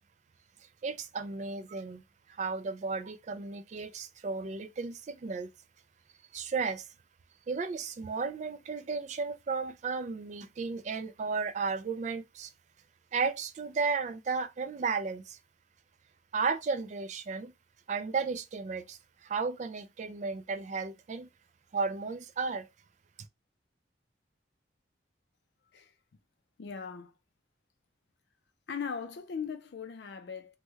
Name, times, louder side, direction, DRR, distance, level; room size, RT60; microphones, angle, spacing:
voice 1, 0.8-2.0 2.3-5.5 6.3-6.9 7.5-12.5 13.1-15.4 16.3-17.5 17.9-21.3 21.7-22.7, right 4 dB, 40° right, 0.3 m, -34 dB
voice 2, 26.6-27.1 28.7-30.6, left 6 dB, 60° left, 0.4 m, -39 dB
3.0 x 2.1 x 3.3 m
head